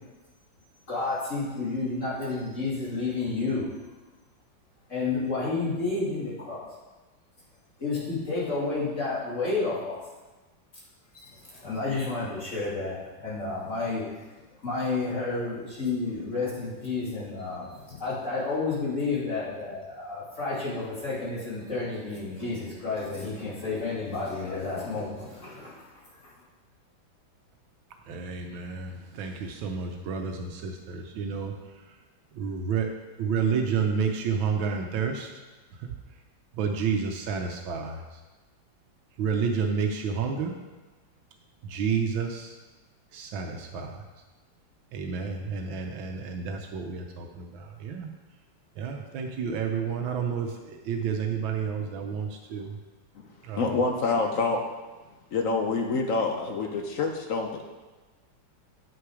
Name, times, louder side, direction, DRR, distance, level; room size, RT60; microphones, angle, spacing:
voice 1, 0.9-3.7 4.9-6.6 7.8-10.0 11.1-14.0 14.6-25.8, left 3 dB, 40° left, -7 dB, 2.8 m, -31 dB
voice 2, 28.1-31.5 32.4-32.9 33.2-35.3 36.6-38.0 39.2-40.5 41.6-42.5 43.1-44.0 44.9-48.1 48.8-52.8 53.4-53.7, right 6 dB, 85° right, 3 dB, 1.5 m, -30 dB
voice 3, 53.6-54.6 55.3-57.6, left 3 dB, 60° left, 3 dB, 0.8 m, -27 dB
8.6 x 6.3 x 4.8 m, 1.2 s
omnidirectional pair, 2.1 m